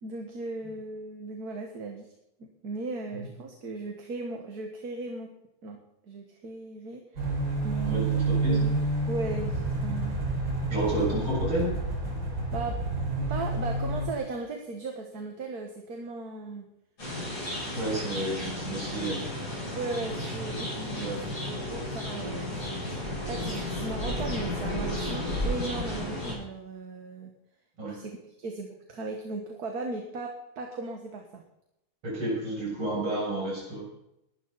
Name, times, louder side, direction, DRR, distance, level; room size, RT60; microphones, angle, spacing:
voice 1, 0.0-2.1 2.4-5.3 5.6-5.8 6.1-7.2 7.6-8.1 8.5-8.7 9.1-10.2 12.5-12.9 13.3-16.7 19.7-21.1 21.4-23.0 23.3-27.3 27.9-31.4, right 3 dB, 50° right, 3 dB, 1.9 m, -37 dB
sound 1, 7.2-14.1, right 2 dB, 65° right, 5.7 m, -29 dB
voice 2, 7.8-8.6 10.7-11.7 17.7-19.2 20.9-21.4 27.8-28.0 32.0-33.8, right 1 dB, 85° right, -5 dB, 8.4 m, -31 dB
sound 2, 17.0-26.4, left 1 dB, 65° left, 8.2 m, -33 dB
19.5 x 12.5 x 4.1 m, 0.84 s
omnidirectional pair, 2.3 m